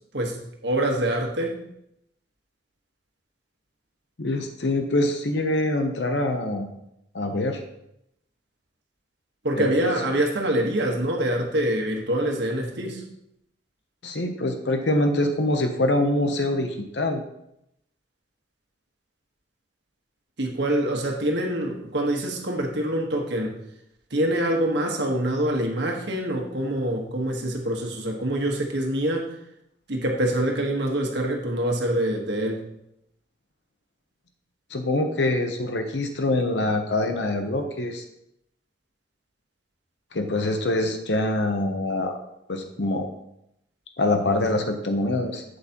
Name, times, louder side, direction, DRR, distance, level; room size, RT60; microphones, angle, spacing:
voice 1, 0.6-1.6 9.4-13.0 20.4-23.5 24.1-29.3 29.9-32.6, right 1 dB, 70° right, 1 dB, 1.4 m, -25 dB
voice 2, 4.2-6.7 7.1-7.6 9.6-9.9 14.0-17.2 34.7-38.0 40.1-42.2 42.5-43.1 44.0-45.4, left 1 dB, 70° left, 6 dB, 0.8 m, -24 dB
7.9 x 7.8 x 3.0 m, 0.78 s
head